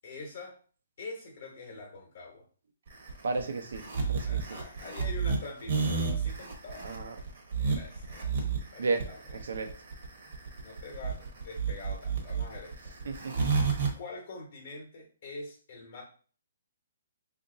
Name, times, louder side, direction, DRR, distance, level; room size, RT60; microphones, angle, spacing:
voice 1, 0.0-0.6 1.0-2.4 4.2-6.9 7.6-8.4 8.7-9.2 10.2-10.3 10.6-12.9 13.9-16.0, left 3 dB, 45° left, 0 dB, 1.0 m, -44 dB
sound 1, 2.9-13.9, right 5 dB, 40° right, 0.9 m, -30 dB
voice 2, 3.2-3.8 4.1-4.6 6.8-7.1 8.8-9.1 9.4-9.7 13.0-13.5, right 3 dB, 75° right, 5 dB, 0.6 m, -33 dB
2.9 x 2.5 x 3.8 m, 0.42 s
hypercardioid pair, 175°, 0 cm